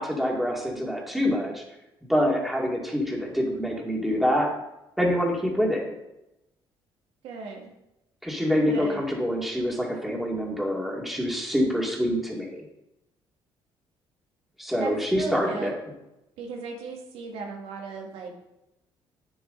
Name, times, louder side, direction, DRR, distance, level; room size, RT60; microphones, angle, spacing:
voice 1, 0.0-1.6 2.1-4.5 5.0-5.9 8.2-12.6 14.6-15.7, equal, ahead, -2 dB, 2.3 m, -26 dB
voice 2, 7.2-7.7 8.7-9.1 14.8-15.7 16.4-18.3, right 4 dB, 90° right, 1 dB, 2.1 m, -36 dB
9.2 x 7.8 x 3.8 m, 0.90 s
cardioid pair, 115°, 10 cm